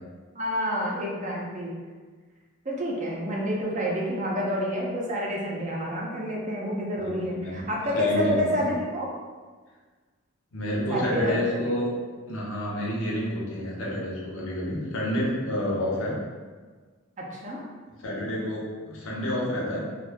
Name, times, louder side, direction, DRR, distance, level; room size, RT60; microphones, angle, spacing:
voice 1, 0.4-1.7 2.6-9.1 10.9-11.4 17.2-17.6, equal, 35° right, -3 dB, 0.5 m, -28 dB
voice 2, 7.9-8.7 10.5-11.9 12.3-16.2 18.0-19.8, equal, 70° left, -4 dB, 0.7 m, -29 dB
2.6 x 2.3 x 3.3 m, 1.4 s
head